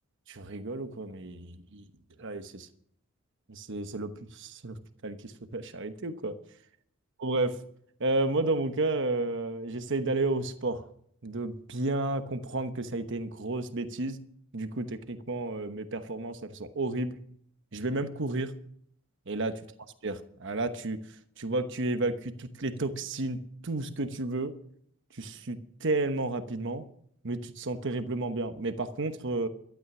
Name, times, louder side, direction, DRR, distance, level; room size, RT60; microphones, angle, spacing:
voice 1, 0.3-1.9 2.2-2.7 3.5-4.7 5.0-6.3 7.2-7.6 8.0-10.8 11.2-14.2 14.5-17.2 17.7-18.5 19.3-19.6 20.0-21.0 21.4-23.4 23.6-24.5 25.1-26.8 27.2-29.5, right 2 dB, 60° right, 9 dB, 1.1 m, -32 dB
13.0 x 12.0 x 6.1 m, 0.66 s
head